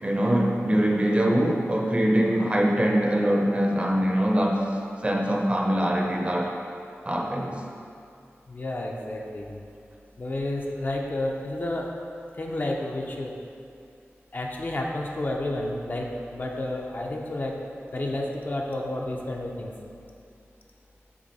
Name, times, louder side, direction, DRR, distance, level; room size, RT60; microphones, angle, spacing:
voice 1, 0.0-4.6 5.0-6.5 7.0-7.6, equal, 25° right, -1 dB, 0.6 m, -23 dB
voice 2, 8.5-9.5 10.2-11.9 12.4-13.3 14.3-17.6 17.9-19.7, left 1 dB, 40° left, -1 dB, 0.6 m, -30 dB
6.2 x 3.8 x 4.1 m, 2.5 s
wide cardioid pair, 100°, 5 cm